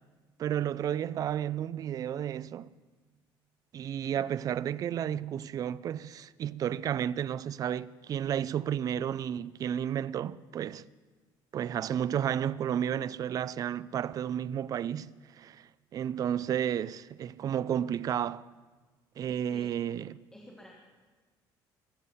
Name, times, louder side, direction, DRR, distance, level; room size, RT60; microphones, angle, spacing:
voice 1, 0.4-2.7 3.7-10.8 11.5-18.5 19.2-20.2, right 9 dB, 40° right, 0.4 m, -32 dB
voice 2, 19.3-19.7 20.3-20.7, left 1 dB, 5° left, 1.4 m, -52 dB
21.0 x 8.2 x 5.6 m
cardioid pair, 135°, 9 cm